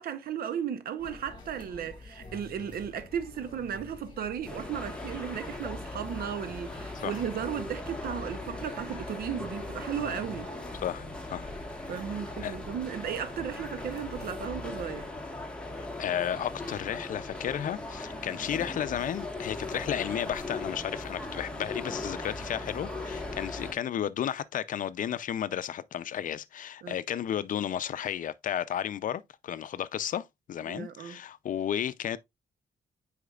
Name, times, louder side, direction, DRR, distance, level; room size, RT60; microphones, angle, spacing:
voice 1, 0.0-10.5 11.9-15.1 26.8-27.0 30.7-31.2, right 8 dB, 85° right, 0.7 m, -35 dB
sound 1, 1.0-15.1, left 3 dB, 30° left, 1.8 m, -48 dB
sound 2, 4.5-23.7, left 2 dB, 5° left, 1.3 m, -39 dB
voice 2, 10.8-11.5 12.4-12.6 15.7-32.2, left 10 dB, 60° left, 0.5 m, -33 dB
8.2 x 5.0 x 2.3 m
wide cardioid pair, 135°, 15 cm